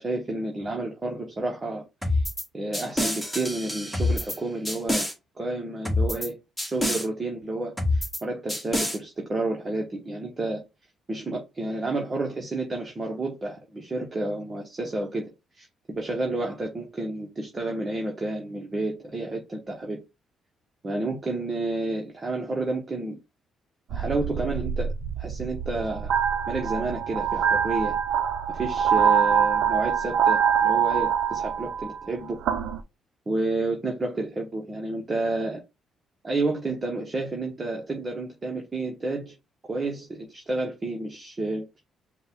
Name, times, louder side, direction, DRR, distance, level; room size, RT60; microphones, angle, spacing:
voice 1, 0.0-1.8 2.1-2.2 2.5-5.1 5.4-6.4 6.6-10.6 11.1-15.7 16.0-20.0 20.8-23.2 23.9-26.1 26.5-28.0 28.5-32.4 33.3-35.6 36.2-39.3 39.7-41.6, right 2 dB, 30° right, 1.0 m, -30 dB
sound 1, 2.0-2.4 2.7-4.4 4.7-5.1 5.9-6.3 6.6-7.1 7.8-8.2 8.5-9.0, left 1 dB, 5° left, 1.6 m, -26 dB
sound 2, 23.9-32.8, right 8 dB, 80° right, 0.6 m, -24 dB
5.3 x 2.3 x 3.6 m
cardioid pair, 90°, 0 cm